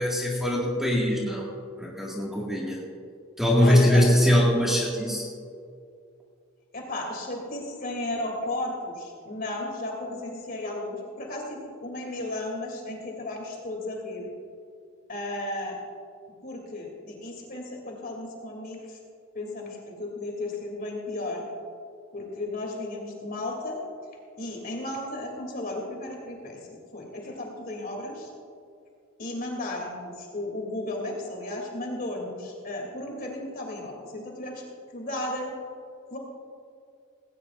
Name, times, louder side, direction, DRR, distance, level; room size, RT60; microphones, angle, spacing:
voice 1, 0.0-1.5 1.8-2.8 3.4-5.3, left 1 dB, ahead, -5 dB, 2.1 m, -22 dB
voice 2, 3.5-4.2 6.7-14.3 15.1-15.8 16.4-19.0 19.3-21.5 22.1-23.8 24.4-26.6 26.9-28.3 29.2-34.6 34.9-35.5 36.1-36.2, left 2 dB, 40° left, 0 dB, 3.1 m, -34 dB
18.5 x 18.0 x 2.6 m, 2.3 s
head